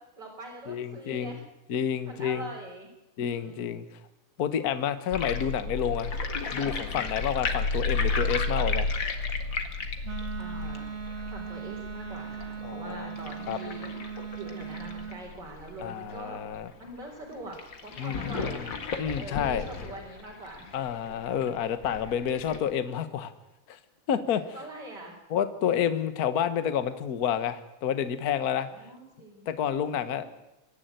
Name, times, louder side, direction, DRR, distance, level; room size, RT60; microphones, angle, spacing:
voice 1, 0.0-1.4 2.1-2.9 3.2-3.7 10.4-10.9 11.3-13.9 14.4-16.4 16.8-18.8 19.1-20.7 24.5-25.2 28.7-29.5, right 2 dB, 30° right, -4 dB, 4.3 m, -43 dB
voice 2, 0.7-1.4 1.7-2.5 3.2-3.8 4.4-6.1 6.5-8.9 12.6-13.1 13.5-13.6 15.8-16.7 18.0-18.7 19.0-19.7 20.7-23.3 23.7-23.8 24.1-24.4 25.3-28.7 29.5-30.2, left 8 dB, 70° left, 12 dB, 0.8 m, -29 dB
sound 1, 5.1-16.1 16.5-16.6 16.8-16.9 17.5-22.6, left 3 dB, 40° left, 2.2 m, -32 dB
Wind instrument woodwind instrument, 10.0-15.2, right 7 dB, 55° right, 2.9 m, -39 dB
25.5 x 11.0 x 9.2 m, 0.93 s
omnidirectional pair, 3.6 m